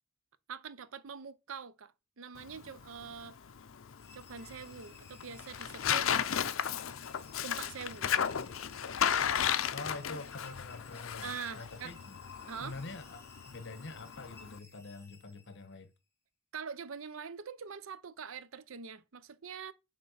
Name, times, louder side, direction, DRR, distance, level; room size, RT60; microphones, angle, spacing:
voice 1, 0.5-3.4 4.1-6.1 7.4-8.1 11.2-11.9 12.4-12.8 16.5-19.7, right 6 dB, 75° right, 0.6 m, -44 dB
Tearing, 2.4-14.6, left 8 dB, 80° left, 0.6 m, -35 dB
sound 1, 4.0-15.9, left 3 dB, 15° left, 1.3 m, -59 dB
voice 2, 9.7-12.2 12.6-15.9, left 3 dB, 60° left, 1.2 m, -45 dB
8.6 x 3.7 x 5.6 m
head